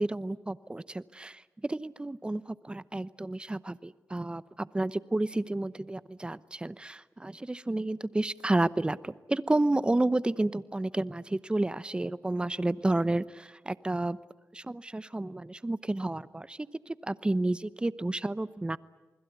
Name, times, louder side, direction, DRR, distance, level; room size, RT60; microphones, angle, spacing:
voice 1, 0.0-1.4 1.7-14.2 14.5-16.6 16.9-18.8, right 2 dB, 15° right, 16 dB, 0.8 m, -31 dB
28.5 x 21.0 x 8.2 m, 1.2 s
cardioid pair, 65°, 6 cm